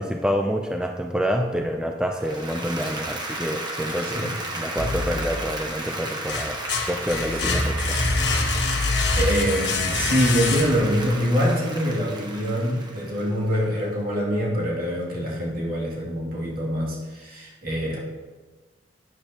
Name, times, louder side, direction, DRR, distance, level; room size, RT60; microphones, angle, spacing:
voice 1, 0.0-6.6 6.9-7.8, equal, 5° right, 3 dB, 0.5 m, -27 dB
Applause, 2.2-13.5, right 2 dB, 25° right, 1.2 m, -34 dB
voice 2, 4.0-4.4 7.3-7.7 8.6-18.0, equal, 50° right, -5 dB, 2.6 m, -25 dB
sound 1, 4.8-5.6 6.0-11.1, left 3 dB, 65° left, 1.4 m, -25 dB
12.5 x 10.0 x 2.9 m, 1.3 s
head